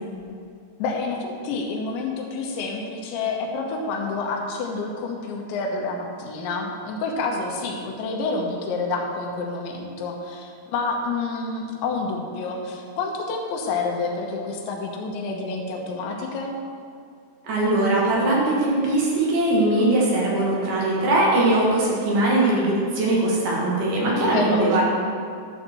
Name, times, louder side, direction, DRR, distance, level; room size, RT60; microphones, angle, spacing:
voice 1, 0.8-16.6 24.1-24.8, left 3 dB, 80° left, 1 dB, 3.1 m, -28 dB
voice 2, 17.4-24.8, right 2 dB, 65° right, -5 dB, 3.2 m, -21 dB
12.0 x 7.2 x 4.5 m, 2.3 s
omnidirectional pair, 5.3 m